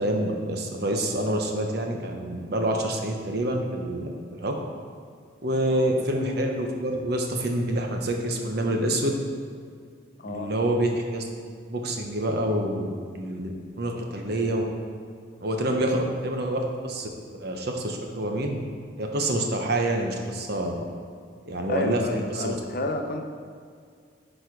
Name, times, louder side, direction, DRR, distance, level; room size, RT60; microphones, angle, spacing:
voice 1, 0.0-4.5 5.4-9.1 10.2-11.2 11.7-14.6 15.4-17.1 17.4-18.6 19.0-20.8 21.5-22.0 22.3-22.6, right 1 dB, 55° right, 2 dB, 0.9 m, -27 dB
voice 2, 10.2-10.6 21.7-23.2, left 2 dB, 50° left, 4 dB, 0.7 m, -31 dB
9.8 x 4.4 x 4.6 m, 2.2 s
head